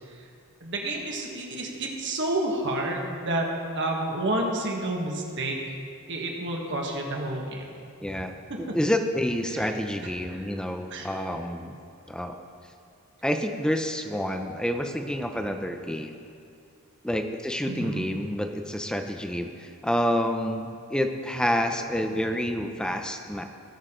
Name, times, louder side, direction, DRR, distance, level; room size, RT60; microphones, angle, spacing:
voice 1, 0.6-3.5 3.7-5.6 6.1-7.7 9.5-10.1 10.4-10.5 10.9-11.1 17.6-18.0, right 1 dB, 55° right, 0 dB, 1.5 m, -30 dB
voice 2, 8.0-11.8 12.1-12.4 13.2-16.1 17.0-23.4, equal, 5° left, 5 dB, 0.6 m, -28 dB
18.5 x 6.4 x 3.8 m, 2.4 s
head